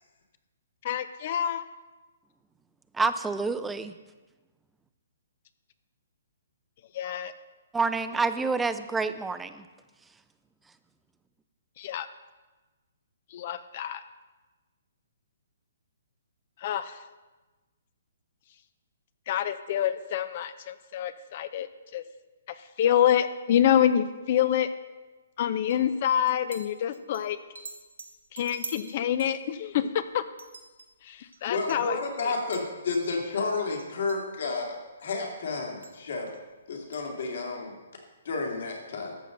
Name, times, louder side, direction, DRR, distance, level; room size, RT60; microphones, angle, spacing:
voice 1, 0.8-1.7 6.9-7.3 11.8-12.1 13.3-14.0 16.6-17.0 19.3-21.7 21.9-22.0 22.6-24.7 25.4-27.4 28.3-30.2 31.0-32.3, left 10 dB, 45° left, 12 dB, 0.5 m, -27 dB
voice 2, 2.9-3.9 7.7-9.6, right 4 dB, 10° right, 11 dB, 0.5 m, -28 dB
sound 1, 25.7-25.9 26.3-27.2 27.6-30.0 30.4-30.9 31.3-31.4 31.7-31.8 32.4-32.7 32.9-33.2 33.8-34.2 35.0-35.1 35.8-36.0 36.3-36.4 36.9-37.0, right 3 dB, 80° right, 1.4 m, -44 dB
voice 3, 31.5-34.8 35.0-36.3 36.7-37.8 38.2-39.1, left 3 dB, 65° left, 1 dB, 2.4 m, -31 dB
13.5 x 6.4 x 3.9 m, 1.2 s
hypercardioid pair, 135°, 0 cm